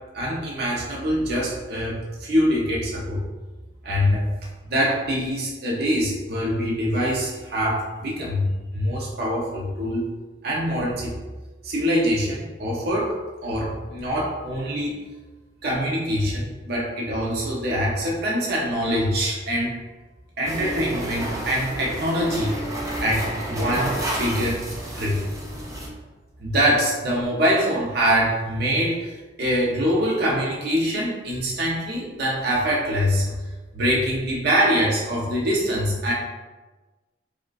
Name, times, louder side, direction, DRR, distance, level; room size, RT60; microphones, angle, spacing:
voice 1, 0.1-3.2 3.8-4.2 4.6-10.1 10.4-11.2 11.6-15.0 15.6-19.7 20.4-22.6 23.0-24.6 25.0-25.3 26.4-33.3 33.7-36.1, equal, 60° right, -4 dB, 0.6 m, -24 dB
sound 1, 20.5-25.9, right 1 dB, 20° right, 0.5 m, -30 dB
4.6 x 2.2 x 2.3 m, 1.2 s
head